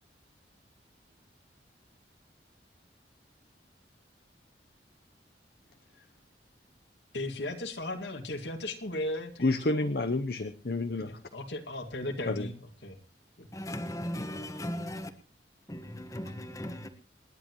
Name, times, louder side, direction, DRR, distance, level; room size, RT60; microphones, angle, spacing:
voice 1, 7.1-9.9 11.1-12.5 12.8-13.0 13.4-13.5, left 1 dB, 80° left, 2.2 m, -36 dB
voice 2, 9.4-11.2 12.3-12.5, left 2 dB, 60° left, 0.8 m, -29 dB
voice 3, 13.5-15.1 15.7-16.9, equal, 20° left, 1.4 m, -37 dB
28.0 x 10.5 x 3.1 m
head